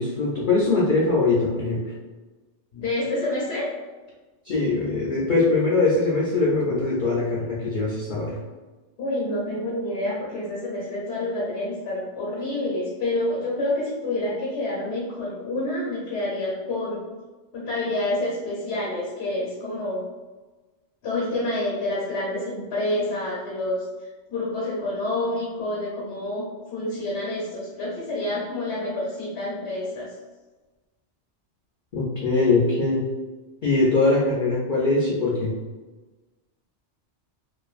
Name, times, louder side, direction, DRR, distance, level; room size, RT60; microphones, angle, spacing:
voice 1, 0.0-1.8 4.4-8.4 31.9-33.1 33.6-35.5, left 3 dB, 60° left, -5 dB, 0.5 m, -22 dB
voice 2, 2.7-3.7 9.0-17.0 17.5-20.0 21.0-30.1, left 1 dB, 75° left, -5 dB, 0.9 m, -28 dB
2.5 x 2.4 x 2.3 m, 1.3 s
omnidirectional pair, 1.2 m